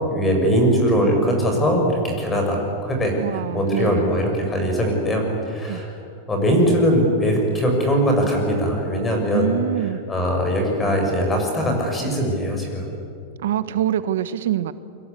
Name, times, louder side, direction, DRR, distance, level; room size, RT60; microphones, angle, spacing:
voice 1, 0.1-3.1 3.5-5.9 6.3-9.5 9.8-12.9, equal, 10° left, 2 dB, 6.3 m, -21 dB
voice 2, 3.2-4.1 5.7-5.8 9.3-10.0 13.4-14.7, right 11 dB, 80° right, 13 dB, 1.2 m, -24 dB
29.5 x 22.5 x 8.4 m, 2.3 s
supercardioid pair, 155°, 0 cm